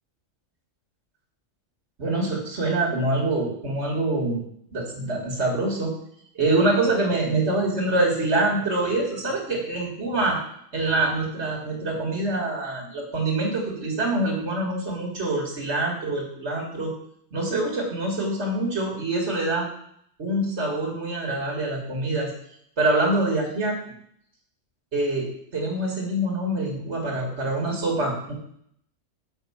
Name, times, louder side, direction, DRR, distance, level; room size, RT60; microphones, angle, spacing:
voice 1, 2.0-4.4 4.7-5.9 6.4-10.4 10.7-16.9 17.3-19.7 20.2-22.3 22.8-23.8 24.9-25.3 25.5-28.3, right 2 dB, 60° right, -3 dB, 2.0 m, -25 dB
7.3 x 4.8 x 5.6 m, 0.68 s
omnidirectional pair, 1.3 m